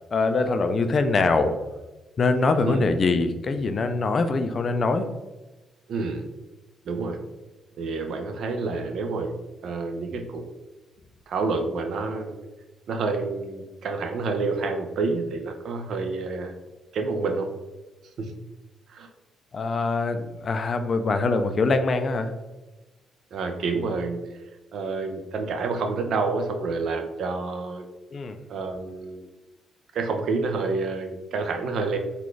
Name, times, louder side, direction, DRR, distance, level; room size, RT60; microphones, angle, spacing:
voice 1, 0.1-1.6 2.2-5.1 19.5-22.3 28.1-28.4, left 3 dB, 45° left, 8 dB, 0.3 m, -23 dB
voice 2, 5.9-6.2 6.8-7.2 7.8-9.3 9.6-10.4 11.3-12.4 12.9-16.5 16.9-17.5 18.2-18.3 18.9-19.1 23.3-24.2 24.7-27.9 28.5-29.3 29.9-32.0, right 3 dB, 70° right, 5 dB, 0.5 m, -28 dB
3.9 x 2.3 x 3.1 m, 1.1 s
cardioid pair, 90°, 0 cm